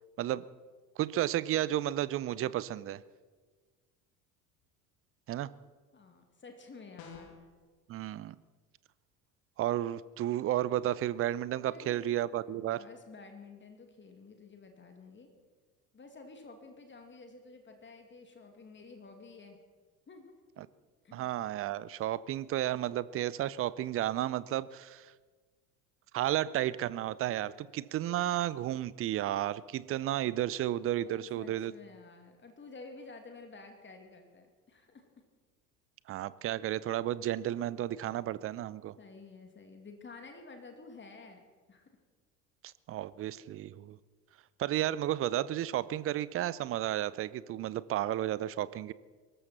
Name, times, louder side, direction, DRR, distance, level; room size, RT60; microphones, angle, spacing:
voice 1, 1.0-3.0 5.3-5.5 7.9-8.4 9.6-12.8 20.6-20.7 21.1-25.1 26.1-31.7 36.1-38.9 42.6-44.0 44.6-48.9, right 13 dB, 30° right, 19 dB, 0.6 m, -32 dB
voice 2, 5.9-7.4 11.7-12.1 12.7-15.3 15.9-19.6 20.1-20.3 21.0-21.3 31.0-35.0 39.0-41.4 41.7-41.9, left 3 dB, 25° left, 4 dB, 2.4 m, -51 dB
sound 1, 7.0-7.5, left 5 dB, 50° left, 2.6 m, -48 dB
23.0 x 13.5 x 4.3 m, 1.4 s
figure-of-eight pair, 65°, 46 cm